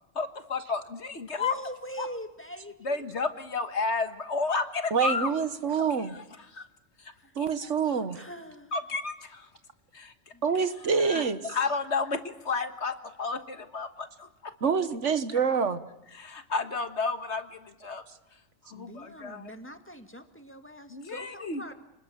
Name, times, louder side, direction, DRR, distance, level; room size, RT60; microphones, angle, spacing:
voice 1, 0.2-1.5 2.0-2.1 2.8-5.3 6.0-6.6 7.0-7.7 8.7-9.5 9.9-10.1 11.0-14.5 15.3-15.4 16.1-18.0 18.7-19.5 20.9-21.6, left 4 dB, 60° left, 9 dB, 1.7 m, -32 dB
voice 2, 1.3-3.0 7.2-7.4 8.1-8.7 10.3-10.4 18.7-21.7, equal, 10° left, 7 dB, 1.9 m, -42 dB
voice 3, 4.9-6.1 7.4-8.2 10.4-11.4 14.6-15.8, right 6 dB, 70° right, 11 dB, 1.6 m, -26 dB
29.5 x 20.5 x 8.7 m, 0.95 s
omnidirectional pair, 1.3 m